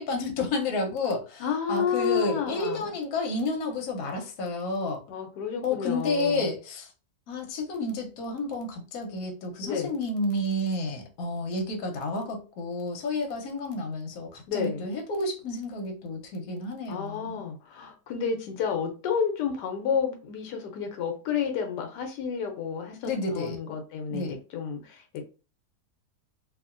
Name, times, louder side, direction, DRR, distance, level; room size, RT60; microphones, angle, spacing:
voice 1, 0.0-5.0 5.6-6.9 7.3-17.4 23.0-23.6 24.1-24.4, left 2 dB, 65° left, 2 dB, 1.2 m, -31 dB
voice 2, 1.4-2.9 5.1-6.5 9.6-9.9 14.5-14.9 16.9-25.2, left 7 dB, 85° left, 4 dB, 1.2 m, -30 dB
2.8 x 2.7 x 2.4 m, 0.34 s
omnidirectional pair, 1.8 m